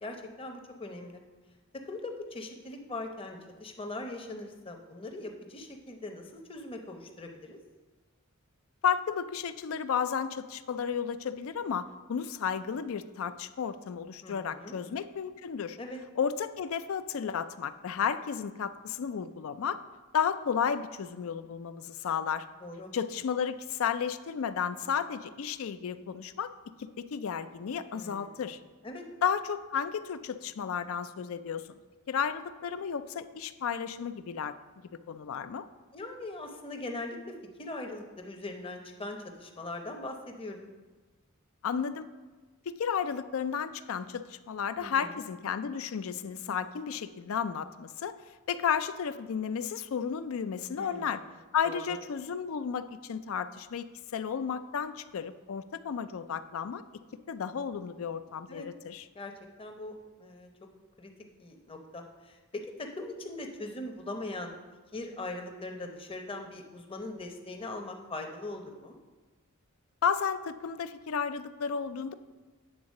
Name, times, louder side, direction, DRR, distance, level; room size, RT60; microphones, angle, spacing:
voice 1, 0.0-1.2 1.8-7.6 14.2-14.8 15.8-16.0 22.6-22.9 27.9-28.5 28.8-29.1 35.9-40.7 44.8-45.2 50.7-51.3 51.6-52.0 58.5-58.7 59.1-59.3 59.6-59.9 60.2-60.5 61.0-61.1 61.4-64.6 64.9-69.0, left 2 dB, 25° left, 3 dB, 0.8 m, -41 dB
voice 2, 8.8-15.8 16.2-19.8 20.1-22.5 22.9-26.5 26.8-28.6 29.2-31.7 32.1-34.5 34.9-35.6 41.6-42.1 42.7-48.1 48.5-51.2 51.5-56.8 57.3-59.1 70.0-72.1, left 7 dB, 65° left, 12 dB, 0.4 m, -33 dB
8.8 x 3.9 x 6.4 m, 1.3 s
head